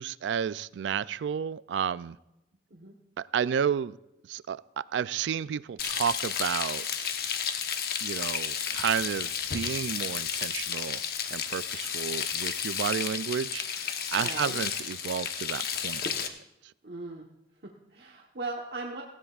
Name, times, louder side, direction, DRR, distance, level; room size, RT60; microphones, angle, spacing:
voice 1, 0.0-2.2 3.2-4.0 4.3-7.1 8.0-11.0 11.3-16.3, right 7 dB, 85° right, 0.3 m, -32 dB
Frying (food), 5.8-16.3, left 7 dB, 55° left, 1.0 m, -32 dB
voice 2, 14.2-14.6 16.8-17.3 17.6-19.0, right 3 dB, 65° right, 1.1 m, -39 dB
17.5 x 16.0 x 2.4 m
head